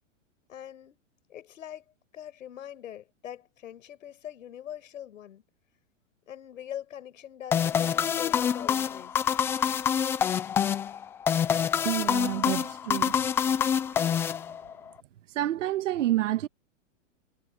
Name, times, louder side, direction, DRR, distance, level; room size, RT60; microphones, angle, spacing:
voice 1, 0.5-1.0 1.3-5.4 6.3-9.2, left 10 dB, 80° left, 6.6 m, -42 dB
sound 1, 7.5-14.9, left 8 dB, 5° left, 0.3 m, -26 dB
voice 2, 11.8-13.1 15.3-16.5, right 14 dB, 70° right, 1.5 m, -28 dB
hypercardioid pair, 135°, 38 cm